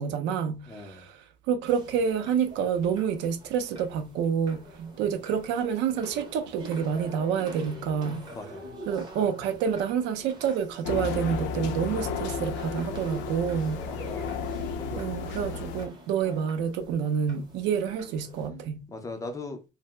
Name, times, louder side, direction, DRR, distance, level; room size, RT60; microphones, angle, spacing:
voice 1, 0.0-8.3 8.9-13.9 15.0-18.8, right 7 dB, 70° right, 0.5 m, -28 dB
voice 2, 0.7-1.1 8.3-8.7 13.8-14.5 14.8-15.6 18.9-19.7, left 2 dB, 15° left, 0.3 m, -40 dB
sound 1, 1.7-18.5, right 1 dB, 25° right, 0.7 m, -46 dB
sound 2, 10.8-15.9, left 5 dB, 75° left, 0.5 m, -33 dB
2.8 x 2.0 x 3.2 m
cardioid pair, 170°, 19 cm